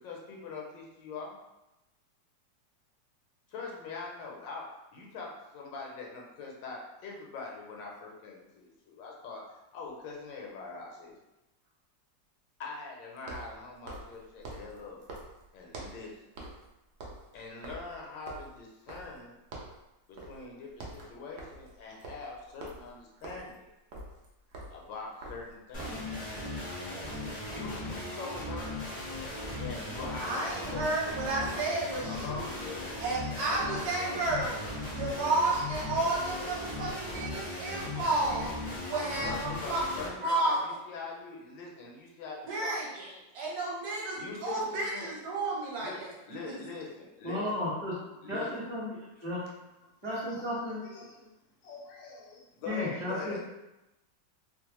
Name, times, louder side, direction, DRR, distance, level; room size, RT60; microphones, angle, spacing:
voice 1, 0.0-1.4 3.5-4.7 4.9-9.4 9.7-11.1 12.6-15.0 15.5-16.3 17.3-19.3 20.1-23.7 24.7-26.6 27.5-28.8 29.5-30.9 31.3-31.6 32.0-32.9 33.4-34.2 34.9-35.0 36.4-36.6 39.2-43.3 44.2-45.1 45.8-47.5 47.9-48.5 49.0-49.4 49.8-49.9 50.3-51.3 51.6-53.4, left 4 dB, 85° left, -1 dB, 1.3 m, -43 dB
sound 1, 9.9-10.0 13.2-16.1 16.4-16.7 16.9-19.3 19.5-19.8 20.2-20.4 20.7-26.1, right 2 dB, 80° right, 0.7 m, -46 dB
sound 2, 25.7-40.1, left 2 dB, 70° left, 0.4 m, -38 dB
voice 2, 30.2-32.5 33.0-34.6 34.9-38.5 38.9-39.8 40.2-40.6 42.5-43.1 43.3-46.1 46.5-46.6, right 2 dB, 60° right, -4 dB, 1.2 m, -31 dB
voice 3, 47.2-48.0 48.3-49.4 50.0-50.8 52.7-53.4, left 1 dB, 25° right, -8 dB, 0.7 m, -34 dB
3.1 x 2.0 x 2.9 m, 0.96 s
omnidirectional pair, 2.0 m